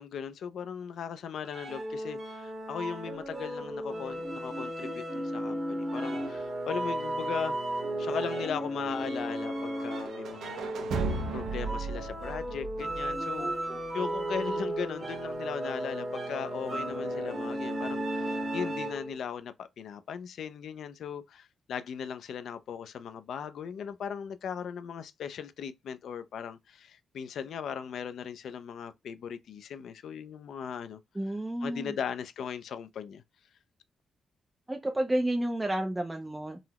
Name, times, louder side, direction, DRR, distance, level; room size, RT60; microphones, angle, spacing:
voice 1, 0.0-7.6 8.0-10.7 11.3-13.5 13.9-31.0 31.6-33.2, left 7 dB, 70° left, 0.3 m, -38 dB
sound 1, 1.5-19.2, right 1 dB, 25° right, 0.8 m, -34 dB
sound 2, 9.9-13.8, right 3 dB, 85° right, 0.6 m, -36 dB
voice 2, 31.2-31.9 34.7-36.6, right 1 dB, 10° right, 0.4 m, -30 dB
3.8 x 2.0 x 2.8 m
wide cardioid pair, 170°, 0 cm